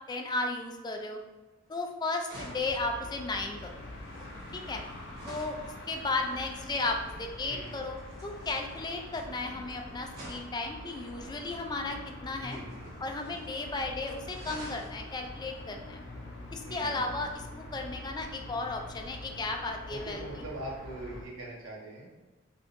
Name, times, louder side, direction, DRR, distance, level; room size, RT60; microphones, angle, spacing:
voice 1, 0.1-1.2 1.7-3.7 4.5-4.8 5.3-12.6 13.0-16.0 16.5-20.2, left 3 dB, 20° left, 3 dB, 0.3 m, -34 dB
sound 1, 1.7-1.9 2.2-5.7 7.6-9.7 10.1-11.7 12.4-13.6 13.8-13.9 14.2-15.0 16.8-16.9, right 1 dB, 55° right, 1.2 m, -49 dB
sound 2, 2.3-21.2, left 1 dB, 65° left, 0.6 m, -45 dB
voice 2, 7.5-8.0 12.4-12.9 16.6-17.1 19.9-22.1, right 1 dB, 75° right, -4 dB, 1.0 m, -42 dB
3.5 x 2.7 x 2.5 m, 1.3 s
head